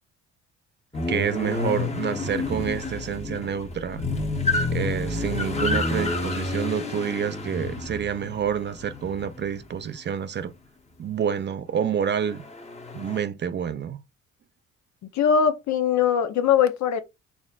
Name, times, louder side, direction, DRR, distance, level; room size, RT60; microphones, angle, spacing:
sound 1, 0.9-9.9 12.2-13.2, left 3 dB, 20° left, 0.9 m, -29 dB
voice 1, 1.1-4.1 4.7-10.5 11.0-12.4 12.9-14.0, right 8 dB, 35° right, 0.4 m, -28 dB
voice 2, 15.1-17.0, left 8 dB, 70° left, 0.7 m, -21 dB
4.1 x 3.4 x 2.3 m
cardioid pair, 90°, 30 cm